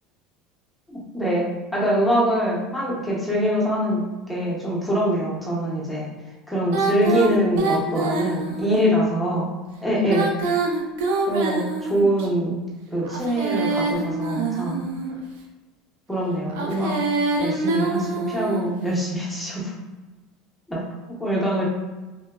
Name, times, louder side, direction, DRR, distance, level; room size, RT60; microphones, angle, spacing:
voice 1, 0.9-6.1 6.5-9.4 9.8-10.6 11.1-12.6 12.9-14.8 16.1-17.0 17.4-19.7 20.7-20.8 21.2-21.6, equal, ahead, -6 dB, 0.6 m, -24 dB
Female singing, 6.7-8.8 9.9-12.3 13.0-15.2 16.5-18.7, right 3 dB, 90° right, 0.4 m, -25 dB
2.9 x 2.2 x 2.2 m, 1.2 s
cardioid pair, 155°, 0 cm